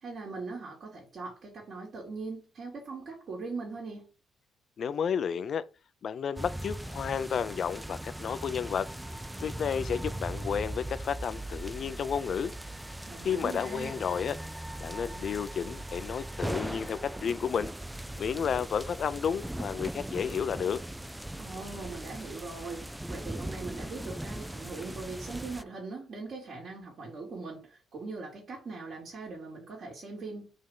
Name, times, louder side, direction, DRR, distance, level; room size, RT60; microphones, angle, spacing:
voice 1, 0.0-4.1 13.1-14.0 21.4-30.5, right 3 dB, 55° right, 2.7 m, -41 dB
voice 2, 4.8-5.6 6.0-8.9 9.4-12.5 13.2-14.4 14.8-17.7 18.2-20.8, left 7 dB, 55° left, 0.6 m, -32 dB
sound 1, 6.4-25.6, right 1 dB, 5° right, 0.4 m, -39 dB
5.3 x 3.7 x 5.6 m
cardioid pair, 90°, 0 cm